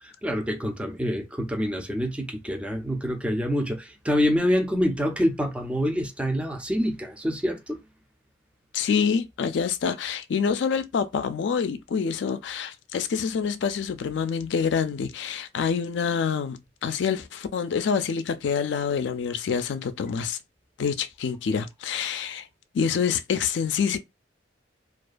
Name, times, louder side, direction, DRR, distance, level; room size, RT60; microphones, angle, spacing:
voice 1, 0.0-7.8, equal, 5° right, 0.4 m, -26 dB
voice 2, 8.7-20.4 20.8-22.5 22.7-24.0, left 6 dB, 70° left, 0.3 m, -26 dB
2.3 x 2.2 x 2.4 m
head